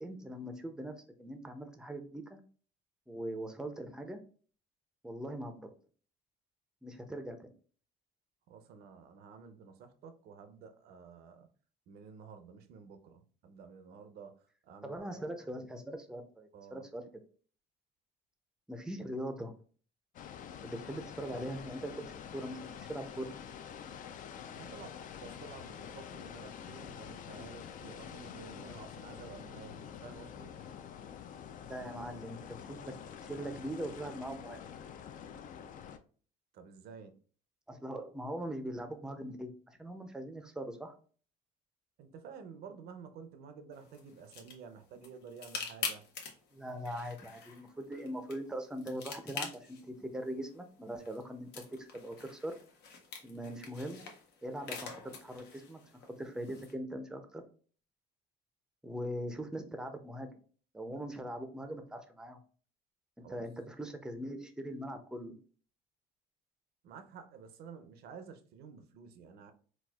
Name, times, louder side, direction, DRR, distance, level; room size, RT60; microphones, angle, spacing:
voice 1, 0.0-0.9 1.2-2.4 3.1-4.2 5.0-5.7 6.8-7.5 14.8-17.0 18.7-19.5 20.6-23.3 31.7-32.8 33.2-34.6 37.7-40.9 46.5-51.6 51.9-52.5 53.2-54.0 54.4-55.8 56.1-57.4 58.8-60.3 60.7-62.4 63.2-65.4, right 1 dB, 5° right, 0.5 m, -41 dB
voice 2, 8.5-11.5 11.9-15.6 16.5-16.9 24.5-30.5 36.5-37.1 42.0-46.0 63.2-63.5 66.8-69.5, right 6 dB, 70° right, 0.6 m, -51 dB
sound 1, 20.1-36.0, left 8 dB, 50° left, 0.4 m, -47 dB
sound 2, 43.7-56.7, left 5 dB, 80° left, 0.9 m, -46 dB
4.1 x 2.3 x 2.3 m
cardioid pair, 110°, 17 cm